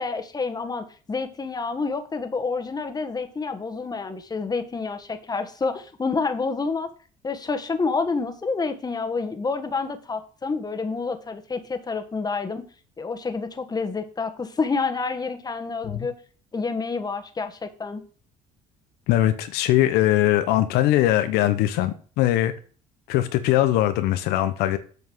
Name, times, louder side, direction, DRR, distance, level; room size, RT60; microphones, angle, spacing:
voice 1, 0.0-6.9 7.2-12.6 13.0-16.1 16.5-18.0, left 4 dB, 25° left, 1.4 m, -28 dB
voice 2, 19.1-22.5 23.1-24.8, left 14 dB, 80° left, 0.9 m, -21 dB
8.0 x 5.3 x 6.2 m
supercardioid pair, 85°, 16 cm